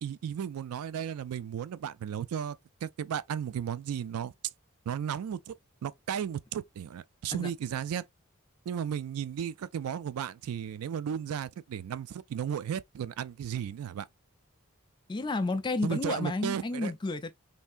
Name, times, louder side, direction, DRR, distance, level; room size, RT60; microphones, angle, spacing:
voice 1, 0.0-2.6 2.8-4.3 4.9-5.5 5.8-8.0 8.7-14.1 15.8-16.9, right 8 dB, 85° right, 0.3 m, -34 dB
voice 2, 15.1-17.3, left 3 dB, 20° left, 0.3 m, -31 dB
3.3 x 2.7 x 2.5 m
head